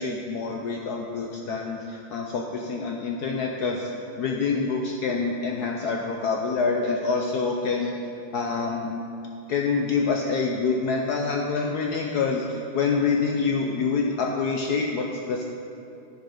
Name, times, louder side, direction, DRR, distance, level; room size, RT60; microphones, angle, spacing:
voice 1, 0.0-3.9 4.2-7.9 8.3-9.0 9.5-15.4, left 4 dB, 75° left, 1 dB, 0.9 m, -26 dB
10.0 x 6.5 x 4.8 m, 2.7 s
omnidirectional pair, 2.3 m